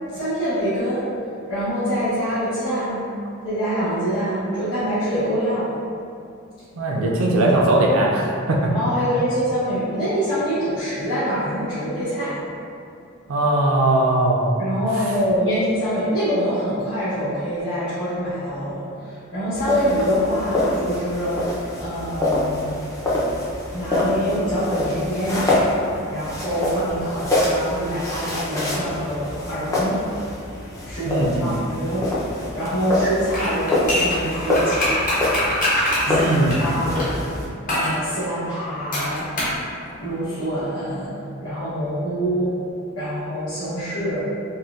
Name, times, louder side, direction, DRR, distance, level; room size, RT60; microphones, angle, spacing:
voice 1, 0.1-1.1 1.5-3.0 3.4-5.7 8.7-12.4 14.6-22.8 23.7-30.0 30.8-35.1 36.0-37.1 37.7-39.3 40.0-42.6 43.0-44.2, equal, 70° left, -13 dB, 0.9 m, -25 dB
voice 2, 6.7-8.7 13.3-14.6 31.1-31.5 36.1-36.6, right 1 dB, 80° right, -2 dB, 0.5 m, -19 dB
sound 1, 19.5-37.5, left 1 dB, 15° left, 0.5 m, -25 dB
sound 2, 33.3-37.1 37.7-38.0 38.9-39.6 39.9-40.0, left 1 dB, 40° left, 0.9 m, -23 dB
4.0 x 2.2 x 2.3 m, 2.5 s
head